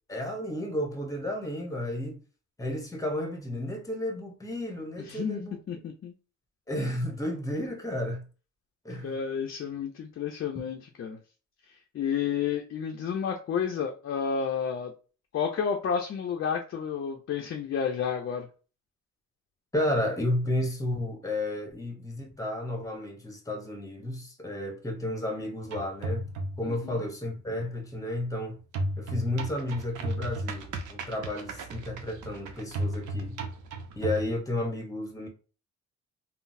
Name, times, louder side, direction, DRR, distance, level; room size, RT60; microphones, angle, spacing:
voice 1, 0.1-2.2 2.6-5.8 6.7-8.2 8.8-9.2 10.5-10.6 19.7-26.3 26.6-28.6 29.0-33.4 34.0-35.3, left 1 dB, 10° left, 0.9 m, -32 dB
voice 2, 5.1-5.4 5.7-6.1 9.0-11.2 11.9-14.9 15.3-18.5 26.6-27.0, left 7 dB, 45° left, 0.5 m, -31 dB
sound 1, 25.6-26.8 28.7-34.3, right 1 dB, 80° right, 0.6 m, -34 dB
3.8 x 2.0 x 2.6 m
cardioid pair, 90°, 30 cm